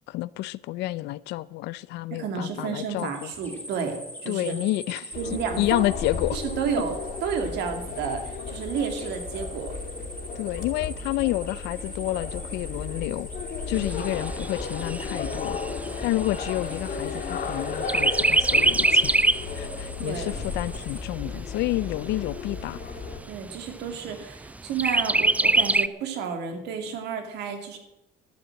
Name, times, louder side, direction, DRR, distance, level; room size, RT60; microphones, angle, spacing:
voice 1, 0.1-3.3 4.3-5.2 5.6-6.4 10.4-13.3 13.7-15.6 16.0-19.2 19.5-22.8, left 17 dB, 85° left, 0.5 m, -29 dB
voice 2, 2.1-4.5 5.2-5.9 6.3-9.7 10.5-10.6 13.8-13.9 20.0-20.4 23.3-27.8, right 6 dB, 80° right, 2.6 m, -31 dB
sound 1, 3.0-21.0, equal, 10° left, 2.9 m, -43 dB
sound 2, 5.1-23.2, left 4 dB, 60° left, 2.5 m, -35 dB
Chirp tweet, 13.7-17.5 17.9-19.5 20.0-20.1 20.4-21.4 22.0-22.1 22.5-22.6 23.0-23.5 24.8-25.9, right 2 dB, 10° right, 0.4 m, -23 dB
12.5 x 9.6 x 7.7 m
cardioid pair, 110°, 17 cm